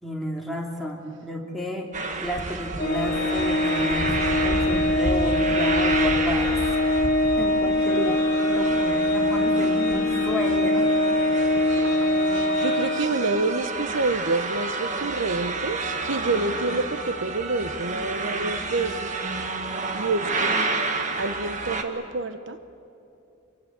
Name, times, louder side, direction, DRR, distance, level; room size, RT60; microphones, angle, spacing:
voice 1, 0.0-1.9 2.2-6.8 7.4-8.2 8.5-10.9, equal, ahead, -2 dB, 3.0 m, -32 dB
sound 1, 1.9-21.8, right 3 dB, 35° right, 1.7 m, -30 dB
Organ, 2.8-13.6, left 2 dB, 45° left, 2.1 m, -23 dB
voice 2, 8.5-9.3 11.5-19.1 19.9-20.6 21.2-22.6, right 3 dB, 65° right, 11 dB, 0.9 m, -28 dB
26.5 x 23.5 x 8.1 m, 2.8 s
head